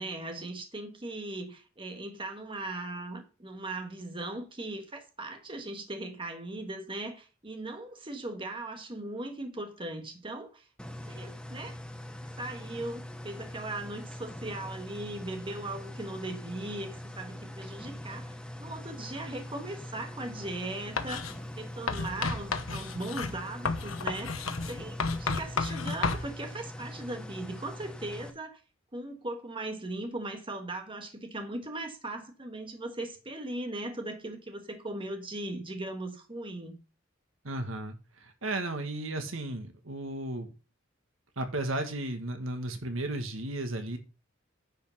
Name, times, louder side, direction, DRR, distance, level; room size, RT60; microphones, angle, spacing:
voice 1, 0.0-10.6 11.1-11.8 12.4-28.6 28.9-36.7, right 2 dB, 25° right, 1.6 m, -39 dB
sound 1, 10.8-28.3, left 1 dB, 5° left, 1.0 m, -43 dB
Writing, 21.0-21.4 21.9-26.3, left 4 dB, 80° left, 1.1 m, -32 dB
voice 2, 37.4-40.5 41.4-44.0, right 2 dB, 70° right, 1.8 m, -34 dB
10.0 x 5.5 x 5.7 m
head